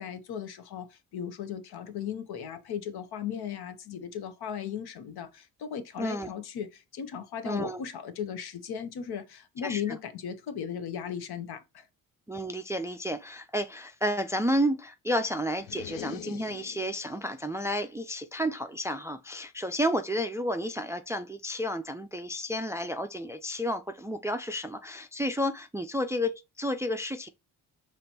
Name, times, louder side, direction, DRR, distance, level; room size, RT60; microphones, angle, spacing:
voice 1, 0.0-11.9, left 8 dB, 60° left, 0.9 m, -37 dB
voice 2, 6.0-6.3 7.4-7.8 9.6-10.0 12.3-27.3, equal, 5° right, 0.4 m, -31 dB
sound 1, 15.6-17.2, left 13 dB, 80° left, 0.5 m, -42 dB
5.1 x 3.1 x 2.9 m
hypercardioid pair, 50°, 43 cm